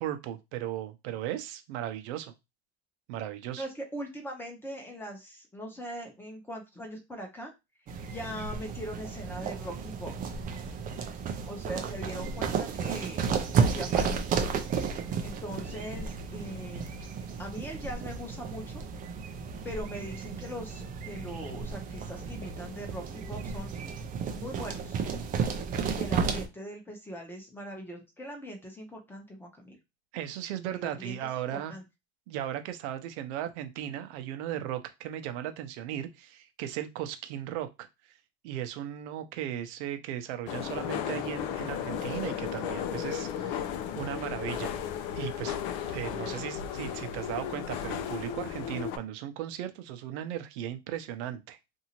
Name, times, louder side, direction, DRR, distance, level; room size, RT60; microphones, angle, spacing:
voice 1, 0.0-2.3 3.1-3.7 30.1-31.8 32.3-37.9 38.4-44.7 45.1-45.6 45.9-51.6, right 11 dB, 65° right, 8 dB, 0.7 m, -36 dB
voice 2, 3.6-7.5 8.1-10.2 11.5-14.1 15.2-16.9 17.4-18.8 19.6-23.7 24.3-25.0 25.8-29.8 30.7-31.8, equal, 5° left, 3 dB, 0.8 m, -41 dB
sound 1, 7.9-26.5, right 6 dB, 25° right, 0.4 m, -33 dB
sound 2, 40.5-49.0, left 9 dB, 55° left, 0.6 m, -34 dB
2.7 x 2.6 x 2.9 m, 0.23 s
supercardioid pair, 120°, 36 cm